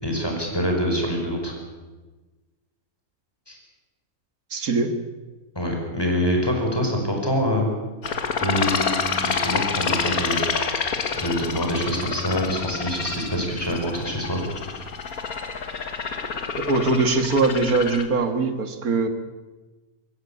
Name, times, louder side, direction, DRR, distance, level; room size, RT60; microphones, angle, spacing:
voice 1, 0.0-1.5 3.5-3.6 5.6-7.7 8.4-10.8 11.1-14.4, equal, 15° left, 1 dB, 5.3 m, -25 dB
voice 2, 4.5-5.0 16.6-19.1, right 3 dB, 80° right, 8 dB, 2.1 m, -22 dB
sound 1, 8.0-18.1, left 5 dB, 80° left, 2.0 m, -28 dB
23.0 x 16.0 x 8.5 m, 1.2 s
omnidirectional pair, 1.5 m